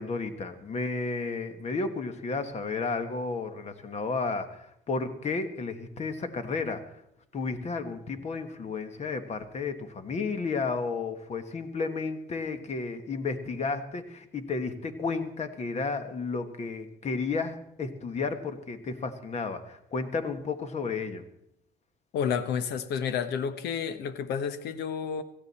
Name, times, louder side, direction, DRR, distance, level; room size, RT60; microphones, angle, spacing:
voice 1, 0.0-6.8 7.3-21.2, left 4 dB, 40° left, 9 dB, 1.5 m, -32 dB
voice 2, 22.1-25.2, left 7 dB, 75° left, 12 dB, 1.1 m, -30 dB
16.5 x 14.0 x 4.3 m, 0.76 s
cardioid pair, 110°, 17 cm